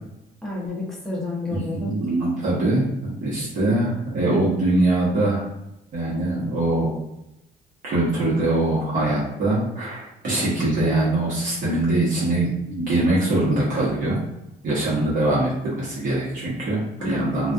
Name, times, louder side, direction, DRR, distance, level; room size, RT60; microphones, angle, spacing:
voice 1, 0.4-2.0 17.0-17.5, left 2 dB, ahead, -5 dB, 0.8 m, -30 dB
voice 2, 1.5-5.5 5.9-7.0 7.8-14.2 14.6-17.5, right 2 dB, 50° right, -7 dB, 0.9 m, -23 dB
2.4 x 2.3 x 2.5 m, 0.88 s
cardioid pair, 110°, 17 cm